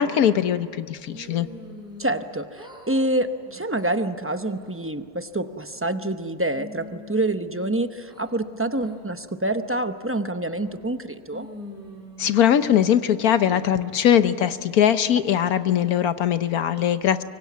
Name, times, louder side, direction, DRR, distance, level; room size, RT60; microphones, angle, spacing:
voice 1, 0.0-1.5 12.2-17.2, left 9 dB, 70° left, 11 dB, 1.3 m, -21 dB
sound 1, 1.1-2.3 2.5-3.1 3.5-3.8 4.3-4.9 5.4-6.1 6.5-8.3 8.8-9.0 9.5-10.0 10.5-11.0 11.3-12.9 13.4-14.0, left 1 dB, ahead, 5.6 m, -44 dB
voice 2, 2.0-11.5, right 1 dB, 20° right, 9 dB, 0.4 m, -27 dB
24.5 x 24.0 x 9.4 m, 2.4 s
omnidirectional pair, 1.7 m